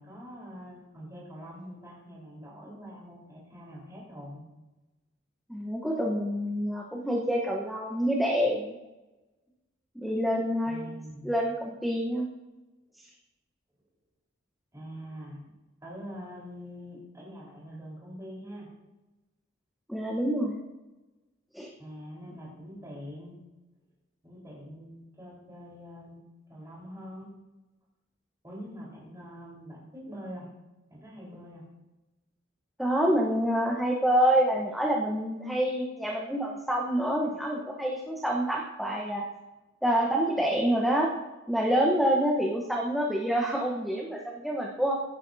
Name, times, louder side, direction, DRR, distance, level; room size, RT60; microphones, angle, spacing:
voice 1, 0.0-4.4 10.6-11.4 14.7-15.4 15.8-18.7 21.8-23.3 24.2-26.2 26.5-27.3 28.4-30.5 30.9-31.6, equal, 15° right, -5 dB, 4.1 m, -44 dB
voice 2, 5.5-8.8 9.9-11.0 11.2-12.3 13.0-13.1 19.9-20.6 21.5-21.7 32.8-39.3 39.8-41.1 41.5-44.9, equal, ahead, -3 dB, 1.0 m, -27 dB
16.5 x 10.0 x 2.7 m, 1.1 s
head